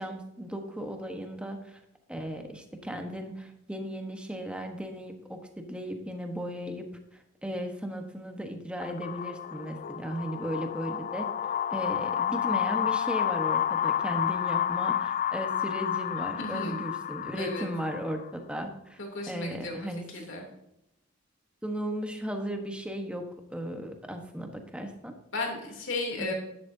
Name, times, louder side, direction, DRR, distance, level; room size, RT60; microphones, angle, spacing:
voice 1, 0.0-1.8 2.1-11.3 11.7-19.0 19.3-20.3 21.6-25.1 26.2-26.3, equal, 5° right, 4 dB, 1.2 m, -36 dB
sound 1, 8.8-18.3, left 9 dB, 40° left, 0.3 m, -30 dB
voice 2, 16.4-16.8 17.3-17.7 19.0-20.5 25.3-26.3, left 2 dB, 60° left, 0 dB, 3.1 m, -35 dB
11.5 x 10.5 x 2.8 m, 0.87 s
head